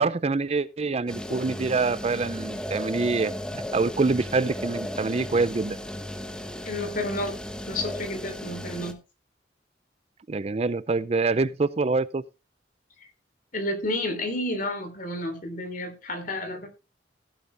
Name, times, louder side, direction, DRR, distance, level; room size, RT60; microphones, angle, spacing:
voice 1, 0.0-3.3 3.7-5.8 10.3-12.2, right 3 dB, 35° right, 0.5 m, -25 dB
sound 1, 1.1-8.9, equal, 5° left, 1.1 m, -35 dB
voice 2, 6.6-7.4 7.7-9.0 13.0-13.1 13.5-16.7, left 1 dB, 50° left, 3.3 m, -31 dB
15.5 x 8.3 x 3.4 m
head